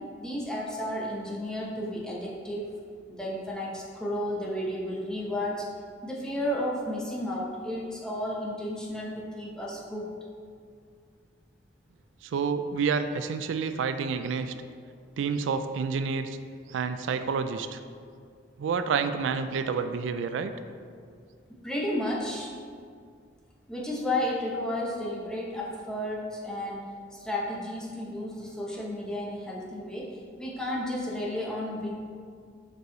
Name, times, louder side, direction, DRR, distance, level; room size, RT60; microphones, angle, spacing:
voice 1, 0.2-2.8 3.2-5.7 6.0-10.1 21.6-22.5 23.7-32.0, left 1 dB, 5° left, -5 dB, 0.9 m, -32 dB
voice 2, 12.2-14.5 15.2-16.4 16.7-17.8 18.6-20.5, right 5 dB, 85° right, 9 dB, 0.3 m, -29 dB
5.4 x 4.7 x 3.9 m, 2.2 s
head